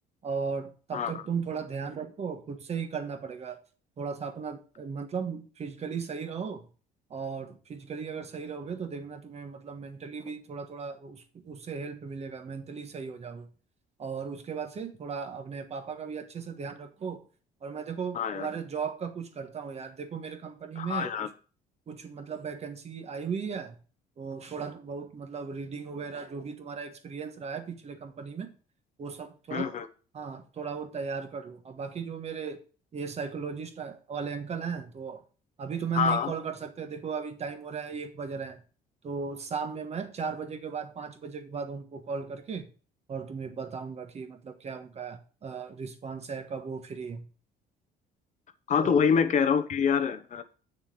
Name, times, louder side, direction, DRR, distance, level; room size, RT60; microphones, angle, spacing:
voice 1, 0.2-3.6 4.0-6.7 7.1-13.5 14.0-17.3 17.6-21.3 21.9-23.8 24.2-28.5 29.0-29.7 30.1-32.6 32.9-35.2 35.6-38.6 39.0-42.7 43.1-47.3 48.8-49.0, right 6 dB, 40° right, 1.3 m, -36 dB
voice 2, 18.1-18.5 20.8-21.3 29.5-29.9 35.9-36.3 48.7-50.4, left 7 dB, 45° left, 0.9 m, -26 dB
7.5 x 6.6 x 4.8 m
cardioid pair, 110°, 17 cm